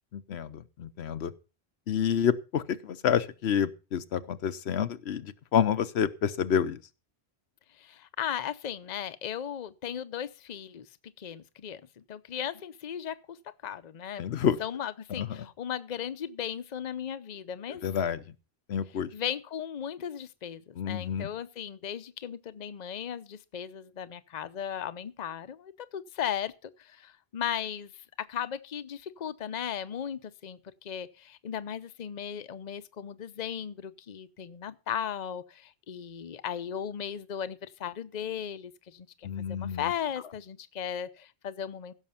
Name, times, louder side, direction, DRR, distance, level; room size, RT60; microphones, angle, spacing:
voice 1, 0.1-1.3 1.9-6.8 14.2-14.6 15.2-15.4 17.8-18.2 18.7-19.1 20.8-21.3 39.2-39.9, left 8 dB, 80° left, 1.0 m, -29 dB
voice 2, 7.8-10.9 11.2-13.4 13.6-14.3 14.6-17.8 19.1-27.9 28.3-41.9, left 9 dB, 45° left, 0.8 m, -36 dB
15.5 x 6.5 x 5.7 m
omnidirectional pair, 1.1 m